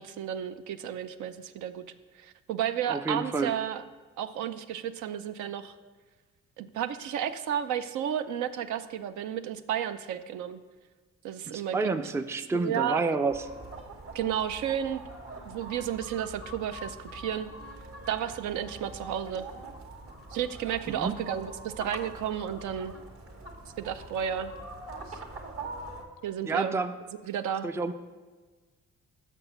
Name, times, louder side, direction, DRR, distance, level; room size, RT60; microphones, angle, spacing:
voice 1, 0.0-1.8 2.2-3.8 4.2-5.7 6.6-10.6 11.2-11.9 12.5-13.0 14.1-15.0 15.4-17.5 18.1-19.5 20.3-22.9 23.8-24.5 25.1-25.2 26.2-26.8 27.3-27.7, right 9 dB, 75° right, 11 dB, 0.5 m, -32 dB
voice 2, 2.9-3.5 11.5-13.5 20.9-21.2 26.4-27.0 27.6-27.9, right 4 dB, 10° right, 10 dB, 0.3 m, -29 dB
sound 1, 13.3-26.0, right 2 dB, 50° right, 1.5 m, -43 dB
6.2 x 6.0 x 6.6 m, 1.4 s
cardioid pair, 90°, 30 cm